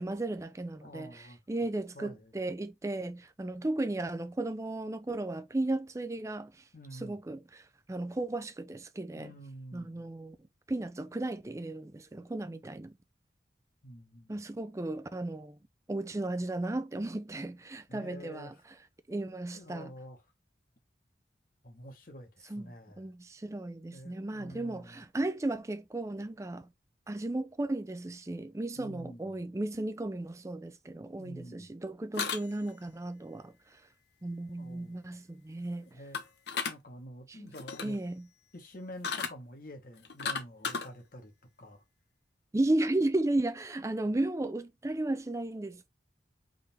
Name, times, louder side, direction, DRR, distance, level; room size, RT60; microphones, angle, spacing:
voice 1, 0.0-6.6 6.9-9.3 9.7-10.4 10.7-13.0 14.3-15.6 15.9-18.5 19.1-19.9 22.5-26.7 27.1-33.5 34.2-36.0 37.3-37.5 37.8-38.3 42.5-45.9, right 2 dB, 15° right, 0.4 m, -35 dB
voice 2, 0.8-1.4 1.9-2.3 6.7-7.2 9.1-10.1 13.8-14.4 17.9-18.5 19.5-20.2 21.6-23.1 23.9-25.0 28.8-29.5 31.2-31.7 34.6-35.1 35.9-36.2 36.7-38.0 38.5-41.3 41.6-41.8, equal, 50° left, 1.1 m, -48 dB
sound 1, 32.1-32.8 36.1-36.8 37.5-38.0 39.0-39.3 40.0-40.9, left 5 dB, 65° left, 0.9 m, -34 dB
3.8 x 3.2 x 4.1 m
head